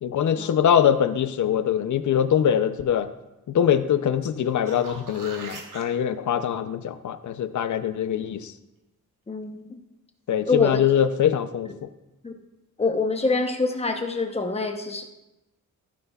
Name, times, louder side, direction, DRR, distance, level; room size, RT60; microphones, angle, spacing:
voice 1, 0.0-3.1 3.5-8.5 10.3-11.9, left 9 dB, 60° left, 12 dB, 0.6 m, -23 dB
sound 1, 4.4-5.8 10.6-10.7, right 4 dB, 65° right, 1.5 m, -40 dB
voice 2, 9.3-9.8 10.5-10.8 12.2-12.3 12.8-15.0, left 3 dB, 20° left, 5 dB, 0.9 m, -25 dB
15.0 x 9.7 x 2.4 m, 0.94 s
wide cardioid pair, 145°, 34 cm